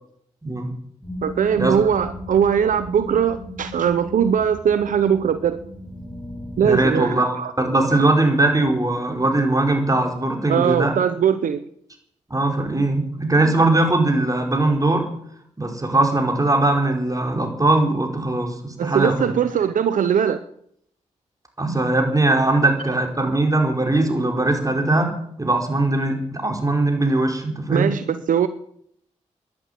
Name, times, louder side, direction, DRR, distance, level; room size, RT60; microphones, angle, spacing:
sound 1, 1.0-6.9, equal, 10° left, 5.1 m, -37 dB
voice 1, 1.2-5.6 6.6-7.5 8.0-8.1 10.5-11.6 18.8-20.4 27.7-28.5, right 8 dB, 80° right, 12 dB, 0.8 m, -20 dB
voice 2, 6.6-10.9 12.3-15.0 15.6-19.3 21.6-25.1 25.4-27.9, right 2 dB, 25° right, 3 dB, 5.0 m, -20 dB
11.5 x 11.0 x 9.2 m, 0.67 s
supercardioid pair, 45°, 14 cm